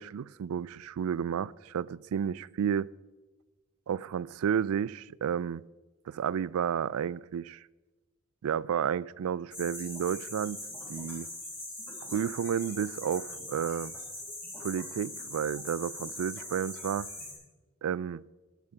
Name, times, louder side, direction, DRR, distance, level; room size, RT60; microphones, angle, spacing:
voice 1, 0.0-2.9 3.9-5.6 6.1-7.6 8.4-10.6 10.9-11.3 12.0-13.9 14.6-17.1 17.8-18.2, right 8 dB, 75° right, 0.3 m, -31 dB
sound 1, 9.5-17.3, left 1 dB, 10° left, 3.7 m, -41 dB
14.0 x 11.0 x 5.6 m
head